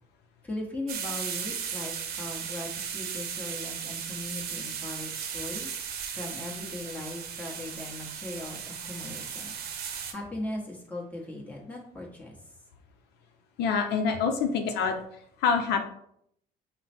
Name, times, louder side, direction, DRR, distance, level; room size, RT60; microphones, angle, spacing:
voice 1, 0.4-5.7 6.1-9.6 10.1-12.4, left 1 dB, 10° left, -3 dB, 1.3 m, -39 dB
sound 1, 0.9-10.1, right 7 dB, 65° right, 0.7 m, -36 dB
voice 2, 13.6-15.0 15.4-15.8, left 5 dB, 80° left, 4 dB, 0.7 m, -26 dB
5.6 x 2.2 x 4.3 m, 0.70 s
cardioid pair, 110°, 17 cm